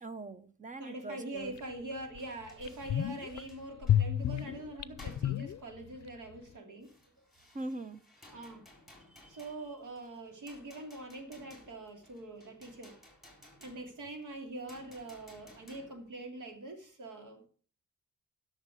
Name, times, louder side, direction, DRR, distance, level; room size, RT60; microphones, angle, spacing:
voice 1, 0.0-1.5 7.5-8.0, right 2 dB, 25° right, 0.7 m, -41 dB
voice 2, 0.8-6.9 7.2-7.3 8.3-8.6 9.3-13.0 13.6-17.5, right 2 dB, 85° right, 2.9 m, -44 dB
sound 1, 1.6-1.7 2.1-2.2 2.6-3.4 3.8-6.1 6.3-6.4, left 11 dB, 65° left, 0.5 m, -31 dB
sound 2, 2.2-4.7 5.0-5.6 6.8-16.1, left 1 dB, ahead, 3.8 m, -59 dB
11.5 x 6.5 x 6.3 m
wide cardioid pair, 170°, 30 cm